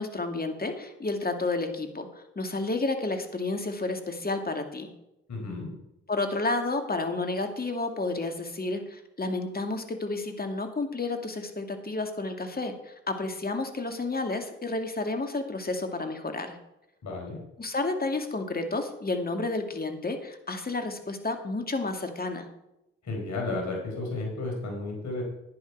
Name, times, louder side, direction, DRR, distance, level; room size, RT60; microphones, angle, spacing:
voice 1, 0.0-4.9 6.1-16.6 17.6-22.5, left 2 dB, 30° left, 5 dB, 2.4 m, -31 dB
voice 2, 5.3-5.7 17.0-17.4 23.0-25.2, left 2 dB, 65° left, 0 dB, 4.5 m, -33 dB
11.0 x 10.5 x 4.7 m, 0.88 s
hypercardioid pair, 50°, 30 cm